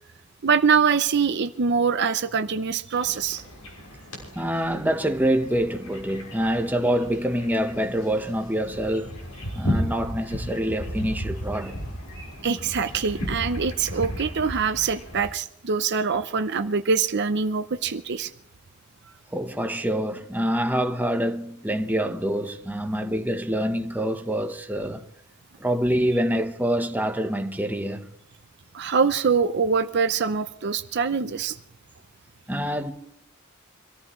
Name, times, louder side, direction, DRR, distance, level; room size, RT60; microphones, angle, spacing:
voice 1, 0.4-3.4 12.4-18.3 28.7-31.6, right 5 dB, 55° right, 0.6 m, -24 dB
sound 1, 2.9-15.3, equal, 80° left, 6.1 m, -34 dB
voice 2, 4.3-9.2 9.5-11.8 19.3-25.0 25.6-28.1 32.5-32.9, equal, 10° right, 1.1 m, -26 dB
25.5 x 14.5 x 3.2 m
head